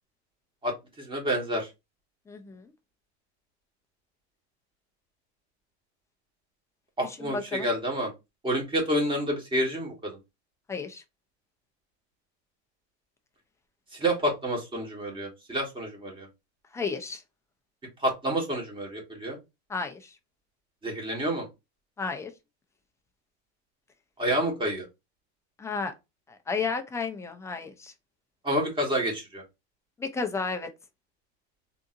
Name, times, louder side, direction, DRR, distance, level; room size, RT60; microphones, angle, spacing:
voice 1, 0.6-1.7 7.0-8.1 8.4-10.2 13.9-16.3 18.0-19.4 20.8-21.5 24.2-24.8 28.4-29.4, right 1 dB, 15° right, 1.4 m, -29 dB
voice 2, 2.3-2.7 7.0-7.7 10.7-11.0 16.7-17.2 19.7-20.1 22.0-22.3 25.6-25.9 26.3-27.9 30.0-30.7, left 4 dB, 10° left, 0.4 m, -32 dB
3.7 x 2.8 x 2.5 m
supercardioid pair, 130°, 34 cm